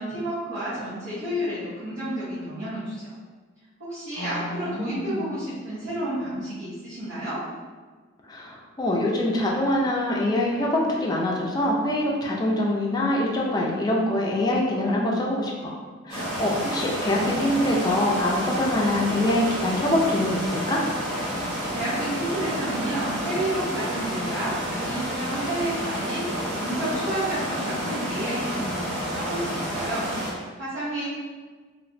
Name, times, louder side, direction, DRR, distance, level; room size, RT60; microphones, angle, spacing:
voice 1, 0.0-3.1 3.8-7.4 21.4-31.1, right 1 dB, 70° right, -14 dB, 1.2 m, -31 dB
voice 2, 4.2-5.3 8.2-15.7 16.1-20.9, left 1 dB, 20° left, -2 dB, 0.4 m, -24 dB
sound 1, 16.1-30.3, equal, 40° right, 1.0 m, -30 dB
3.0 x 2.5 x 2.6 m, 1.4 s
head